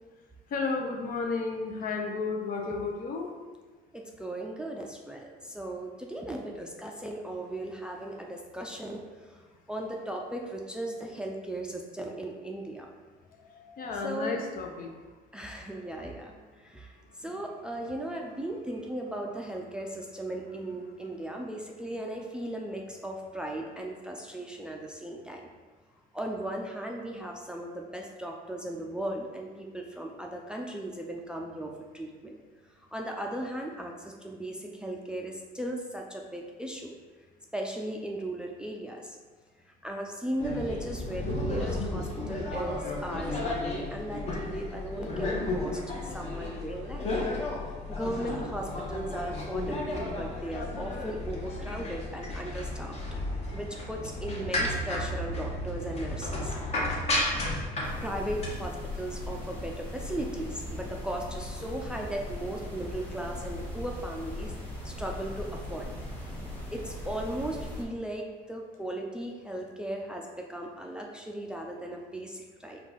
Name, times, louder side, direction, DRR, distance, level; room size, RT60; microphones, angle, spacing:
voice 1, 0.5-3.4 13.5-14.9, left 4 dB, 55° left, 2 dB, 0.6 m, -32 dB
voice 2, 3.9-9.4 9.7-12.9 14.0-14.5 15.3-16.3 16.6-25.5 26.1-32.4 32.9-36.9 37.5-39.2 39.7-47.1 47.9-53.0 53.5-56.5 58.0-64.5 64.8-66.1 66.7-72.8, right 1 dB, 5° right, 1 dB, 0.4 m, -37 dB
sound 1, 40.4-58.5, left 1 dB, 40° left, 1.0 m, -33 dB
sound 2, 57.8-67.8, left 1 dB, 10° left, 1.2 m, -39 dB
4.4 x 2.4 x 4.0 m, 1.4 s
cardioid pair, 110°, 17 cm